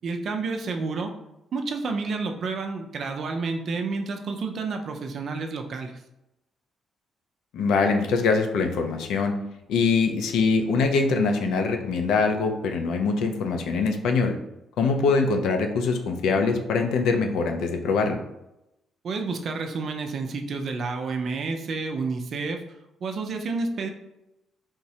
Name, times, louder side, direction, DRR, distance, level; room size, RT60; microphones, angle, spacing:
voice 1, 0.0-1.1 1.5-5.9 19.0-22.6 23.0-23.9, right 4 dB, 55° right, 4 dB, 0.4 m, -30 dB
voice 2, 7.5-9.4 9.7-14.4 14.8-18.2, left 4 dB, 85° left, 4 dB, 0.4 m, -23 dB
3.5 x 2.0 x 2.7 m, 0.89 s
cardioid pair, 90°, 0 cm